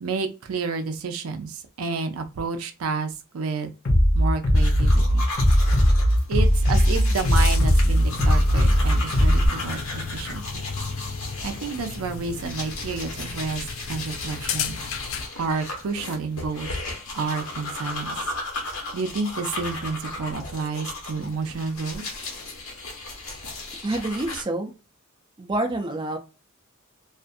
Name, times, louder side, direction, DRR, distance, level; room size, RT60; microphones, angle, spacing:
voice 1, 0.0-3.7 4.1-5.3 6.3-10.6 11.4-14.8 15.4-16.7 17.1-18.3 18.6-22.0, right 4 dB, 80° right, 6 dB, 0.5 m, -30 dB
Bass drum, 3.8-9.5, equal, 50° left, 0.8 m, -18 dB
sound 1, 4.5-24.4, left 2 dB, 85° left, 1.1 m, -35 dB
sound 2, 7.1-15.3, left 5 dB, 65° left, 0.4 m, -34 dB
voice 2, 23.8-24.7 25.4-26.2, right 2 dB, 20° right, 3 dB, 0.4 m, -27 dB
2.4 x 2.4 x 2.5 m, 0.30 s
head